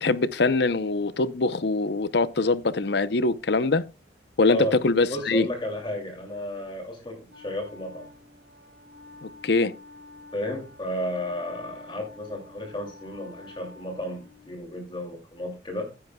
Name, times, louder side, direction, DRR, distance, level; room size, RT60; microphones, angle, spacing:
voice 1, 0.0-3.8 4.4-5.5 9.2-9.7, left 3 dB, 60° left, 0.7 m, -23 dB
voice 2, 5.1-8.1 10.3-15.9, equal, 25° left, 2.6 m, -33 dB
Wind instrument woodwind instrument, 7.3-14.8, left 3 dB, 65° right, 2.8 m, -49 dB
15.0 x 10.0 x 2.3 m
head